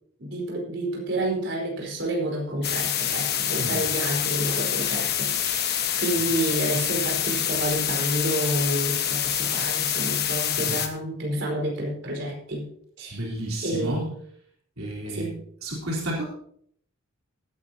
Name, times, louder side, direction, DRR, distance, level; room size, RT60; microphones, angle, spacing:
voice 1, 0.2-12.7 13.0-13.2 13.6-14.1 15.0-15.4, right 1 dB, 60° right, 0 dB, 4.6 m, -29 dB
sound 1, 2.6-10.9, left 10 dB, 50° left, 1.4 m, -26 dB
voice 2, 3.5-3.8 10.6-10.8 13.1-14.1 14.8-15.3 15.6-16.2, right 1 dB, 80° right, -4 dB, 3.9 m, -31 dB
18.5 x 10.5 x 2.9 m, 0.65 s
head